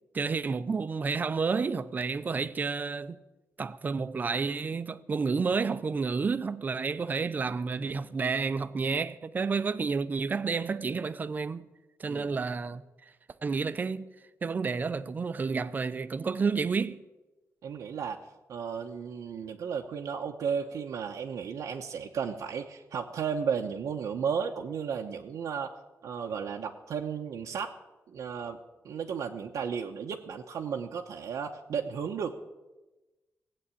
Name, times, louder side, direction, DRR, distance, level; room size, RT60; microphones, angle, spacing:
voice 1, 0.1-3.2 3.6-11.7 12.0-12.8 13.4-14.1 14.4-17.0, right 5 dB, 30° right, 0.6 m, -30 dB
voice 2, 17.6-18.2 18.5-25.8 26.0-27.7 28.1-28.6 28.8-32.4, right 6 dB, 80° right, 1.0 m, -34 dB
17.0 x 8.6 x 8.5 m
wide cardioid pair, 155°, 6 cm